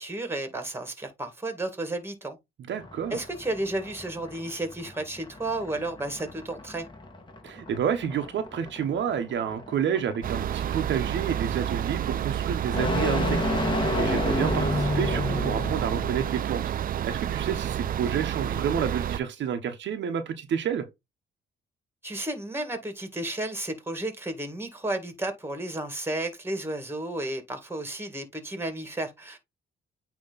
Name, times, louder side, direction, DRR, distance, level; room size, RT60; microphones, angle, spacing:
voice 1, 0.0-2.4 3.1-6.9 22.0-29.4, right 1 dB, 10° right, 2.1 m, -32 dB
voice 2, 2.6-3.2 7.4-13.4 14.0-16.6 17.0-20.9, right 8 dB, 65° right, 1.0 m, -29 dB
sound 1, 2.8-16.3, left 2 dB, 25° left, 1.9 m, -32 dB
sound 2, 10.2-19.2, right 10 dB, 45° right, 0.4 m, -30 dB
8.8 x 3.1 x 4.0 m
cardioid pair, 90°, 20 cm